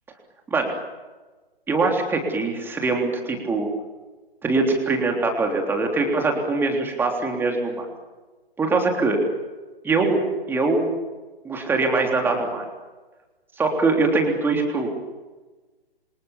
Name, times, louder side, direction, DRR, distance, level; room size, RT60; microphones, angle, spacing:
voice 1, 1.7-3.7 4.4-7.9 8.6-9.2 9.8-10.9 11.4-12.7 13.6-14.9, right 3 dB, 5° right, 2 dB, 3.5 m, -22 dB
29.0 x 26.0 x 7.2 m, 1.2 s
figure-of-eight pair, 135°, 31 cm